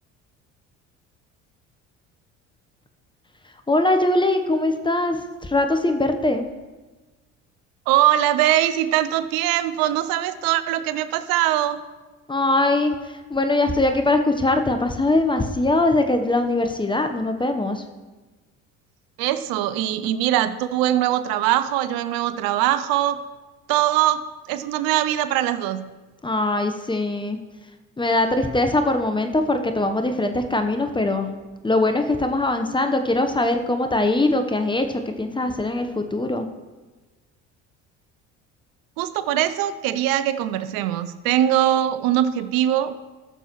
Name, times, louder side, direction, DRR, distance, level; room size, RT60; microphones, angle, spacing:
voice 1, 3.7-6.4 12.3-17.8 26.2-27.4 28.0-31.3 31.6-36.5, left 2 dB, 15° left, 6 dB, 0.9 m, -22 dB
voice 2, 7.9-11.8 19.2-23.2 23.7-24.2 24.5-25.9 39.0-42.9, right 12 dB, 65° right, 13 dB, 0.6 m, -22 dB
13.5 x 6.9 x 3.1 m, 1.2 s
hypercardioid pair, 60°, 38 cm